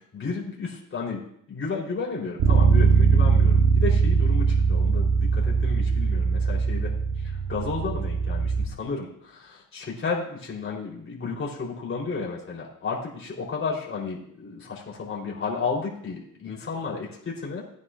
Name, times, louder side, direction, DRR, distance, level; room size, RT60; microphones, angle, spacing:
voice 1, 0.1-1.2 1.5-6.9 7.5-13.0 13.2-17.6, left 4 dB, 40° left, -3 dB, 3.9 m, -32 dB
Bass guitar, 2.4-8.6, right 5 dB, 75° right, 1.5 m, -21 dB
16.5 x 9.5 x 2.6 m, 0.70 s
cardioid pair, 80°, 33 cm